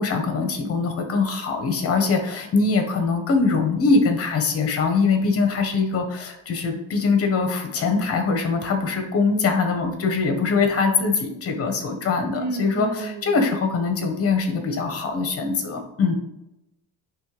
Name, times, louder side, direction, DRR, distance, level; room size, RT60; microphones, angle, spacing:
voice 1, 0.0-16.2, left 4 dB, 35° left, 5 dB, 1.1 m, -22 dB
voice 2, 12.3-13.5, right 3 dB, 55° right, 7 dB, 0.9 m, -32 dB
9.7 x 3.3 x 3.3 m, 0.89 s
cardioid pair, 165°, 38 cm